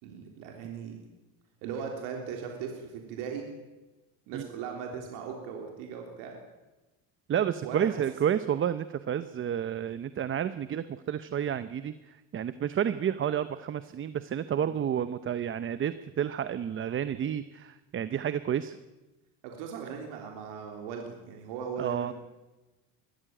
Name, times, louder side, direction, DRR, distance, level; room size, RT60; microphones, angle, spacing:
voice 1, 0.0-1.0 1.6-3.5 4.3-6.4 7.6-8.0 14.6-14.8 19.4-22.1, right 6 dB, 80° right, 2 dB, 3.7 m, -38 dB
voice 2, 7.3-18.8 21.8-22.1, right 9 dB, 30° right, 13 dB, 0.8 m, -30 dB
21.5 x 14.5 x 9.1 m, 1.1 s
supercardioid pair, 115°, 39 cm